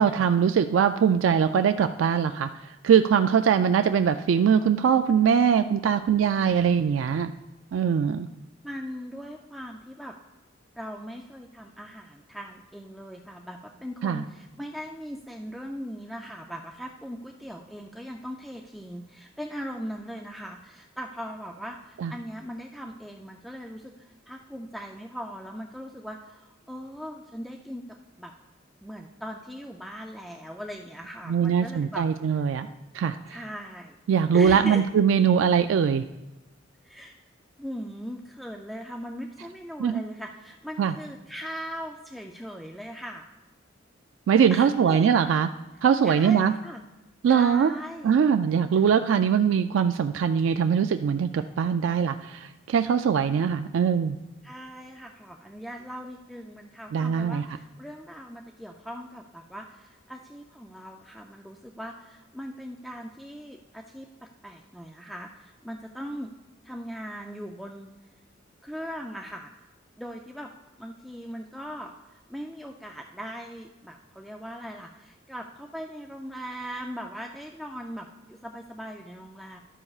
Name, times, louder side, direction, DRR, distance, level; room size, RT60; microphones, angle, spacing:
voice 1, 0.0-2.5 2.8-7.3 7.7-8.3 14.0-14.2 22.0-22.1 31.3-32.7 32.9-33.2 34.1-36.0 39.8-40.0 40.8-40.9 44.3-45.5 45.8-46.5 47.2-47.7 48.0-54.2 56.9-57.4, right 7 dB, 80° right, 8 dB, 0.3 m, -22 dB
voice 2, 8.6-10.2 10.8-27.8 28.2-28.3 28.8-32.6 33.3-34.0 34.3-34.8 36.8-37.2 37.6-43.2 44.5-45.1 46.0-46.8 47.3-48.2 48.8-48.9 54.4-66.3 66.6-67.9 68.6-69.6 70.0-70.5 70.8-79.6, equal, ahead, 1 dB, 0.3 m, -39 dB
12.0 x 9.7 x 2.4 m, 1.0 s
head